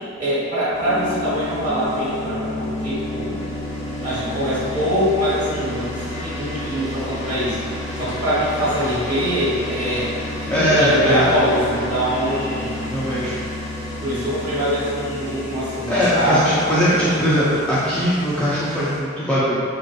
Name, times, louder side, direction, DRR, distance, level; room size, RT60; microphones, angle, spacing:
voice 1, 0.2-3.5 4.0-7.6 8.0-10.1 10.4-12.8 14.0-16.6, equal, 40° right, -11 dB, 1.4 m, -23 dB
sound 1, 0.7-19.0, left 1 dB, 30° left, 1.0 m, -30 dB
voice 2, 10.5-11.3 12.9-13.4 15.9-19.6, equal, 5° left, -11 dB, 0.4 m, -20 dB
3.9 x 2.4 x 2.3 m, 2.3 s
head